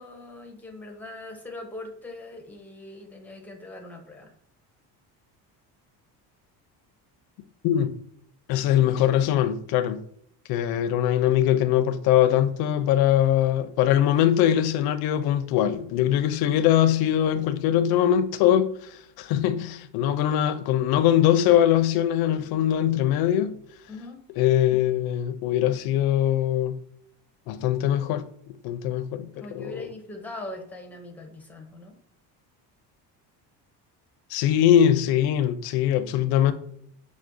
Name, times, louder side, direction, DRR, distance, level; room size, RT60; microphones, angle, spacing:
voice 1, 0.0-4.3 23.9-24.2 29.3-32.0, left 2 dB, 5° left, 0.5 m, -41 dB
voice 2, 7.6-7.9 8.5-10.0 10.5-23.6 24.4-26.8 27.5-28.3 28.6-29.3 29.5-29.9 34.3-36.5, left 11 dB, 65° left, 0.5 m, -22 dB
5.9 x 2.1 x 2.5 m
cardioid pair, 135°, 40 cm